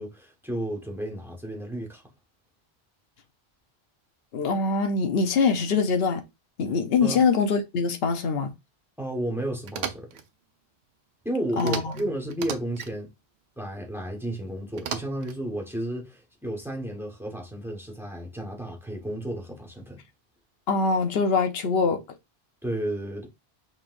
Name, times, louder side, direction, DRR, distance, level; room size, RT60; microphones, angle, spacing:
voice 1, 0.0-2.0 7.0-7.2 9.0-10.1 11.2-13.1 13.6-20.0 22.6-23.3, right 1 dB, ahead, 1.1 m, -32 dB
voice 2, 4.3-6.2 6.6-8.5 11.6-11.9 20.7-22.0, left 4 dB, 70° left, 1.0 m, -23 dB
sound 1, 9.7-10.2 11.6-12.0 12.3-12.9 14.8-15.4, right 8 dB, 90° right, 0.9 m, -35 dB
5.7 x 3.1 x 2.5 m
omnidirectional pair, 1.1 m